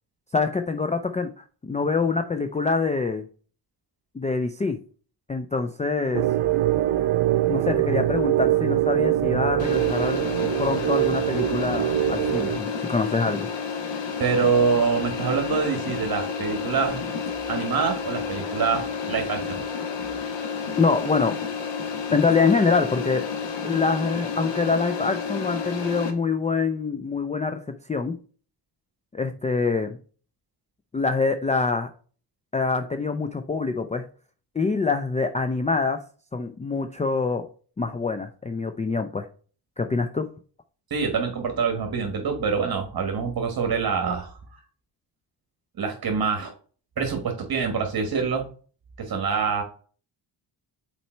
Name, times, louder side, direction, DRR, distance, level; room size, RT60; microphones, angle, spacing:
voice 1, 0.3-3.3 4.1-4.8 5.3-6.3 7.5-10.3 10.6-13.5 20.8-21.4 22.1-23.3 23.6-28.2 29.1-30.0 30.9-31.9 32.5-34.1 34.6-36.0 36.3-37.5 37.8-39.3 39.8-40.3, left 4 dB, 15° left, 7 dB, 0.4 m, -25 dB
sound 1, 6.1-12.6, right 14 dB, 90° right, 0.7 m, -23 dB
sound 2, 9.6-26.1, left 6 dB, 75° left, 1.3 m, -31 dB
voice 2, 14.2-17.0 17.5-19.6 40.9-44.3 45.8-46.5 47.0-48.4 49.0-49.6, right 5 dB, 50° right, 3 dB, 1.4 m, -25 dB
5.6 x 4.3 x 4.4 m, 0.41 s
cardioid pair, 110°, 45 cm